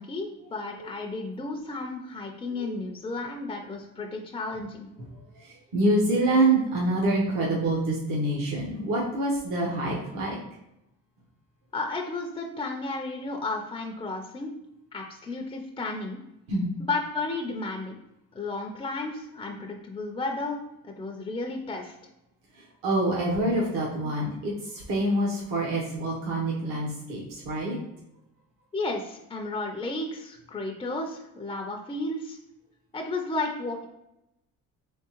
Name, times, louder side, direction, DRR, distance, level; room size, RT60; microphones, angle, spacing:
voice 1, 0.0-4.9 11.7-14.5 14.9-16.2 16.8-18.0 18.3-20.6 20.8-21.9 28.7-32.4 32.9-33.9, left 2 dB, 15° left, 2 dB, 0.3 m, -33 dB
voice 2, 5.3-10.4 16.5-16.7 22.5-27.8, right 2 dB, 70° right, -3 dB, 1.0 m, -26 dB
3.6 x 3.5 x 2.9 m, 0.88 s
cardioid pair, 110°, 34 cm